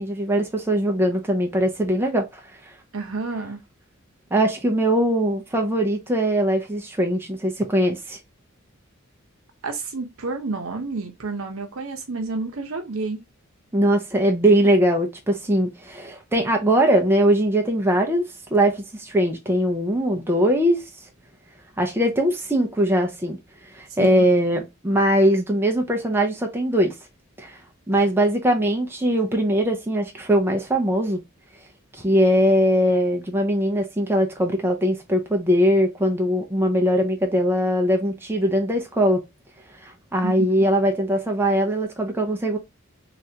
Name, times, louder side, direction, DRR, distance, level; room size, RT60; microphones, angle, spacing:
voice 1, 0.0-2.4 4.3-8.2 13.7-18.2 18.5-20.8 21.8-23.4 23.7-26.9 27.4-27.6 27.9-31.2 31.9-39.2 39.8-42.6, equal, 10° right, 0.4 m, -21 dB
voice 2, 2.9-3.6 9.6-13.3 24.0-24.3 40.2-40.7, right 3 dB, 70° right, 0.8 m, -30 dB
3.3 x 2.4 x 2.7 m
head